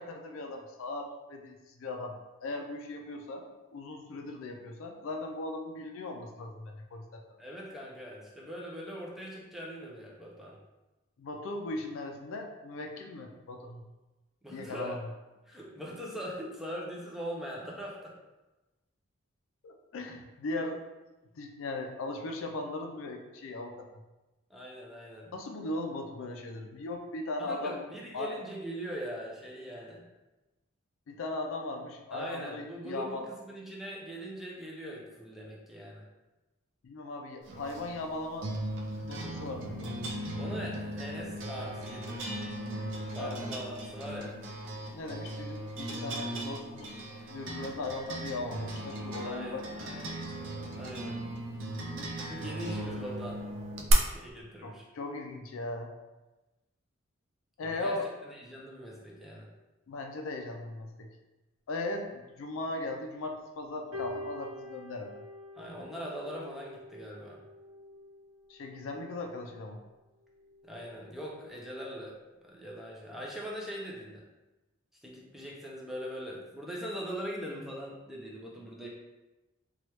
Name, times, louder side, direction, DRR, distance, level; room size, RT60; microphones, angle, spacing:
voice 1, 0.0-2.2 2.4-3.5 3.7-7.2 11.2-13.8 14.5-15.0 19.6-20.8 21.4-23.9 25.3-27.8 28.1-28.3 31.1-33.3 36.8-38.5 39.1-40.0 43.2-43.4 44.9-47.0 47.3-49.6 54.6-55.9 57.6-58.1 59.9-61.1 61.7-65.1 68.5-69.8, left 2 dB, 70° left, 3 dB, 0.4 m, -38 dB
voice 2, 7.4-10.6 14.4-15.0 15.5-18.1 24.5-25.3 27.4-30.0 32.1-36.1 40.4-42.4 43.1-44.4 49.2-50.3 50.7-51.3 52.3-53.4 53.8-54.8 57.6-59.5 65.6-67.4 70.6-72.1 72.4-74.2 75.0-78.9, equal, ahead, -4 dB, 0.4 m, -41 dB
sound 1, 37.5-53.9, right 1 dB, 60° right, 0.4 m, -38 dB
sound 2, 63.9-71.9 72.5-72.8, left 1 dB, 85° right, 0.8 m, -47 dB
3.0 x 2.3 x 2.9 m, 1.1 s
head